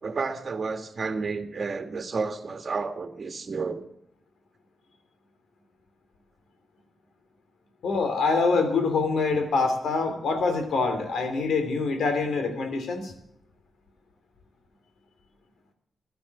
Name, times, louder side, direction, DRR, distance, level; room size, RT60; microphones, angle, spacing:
voice 1, 0.0-3.8, right 4 dB, 50° right, 6 dB, 1.9 m, -31 dB
voice 2, 7.8-13.1, left 4 dB, 85° left, 7 dB, 2.9 m, -25 dB
15.5 x 11.5 x 7.1 m, 0.74 s
cardioid pair, 80°, 0 cm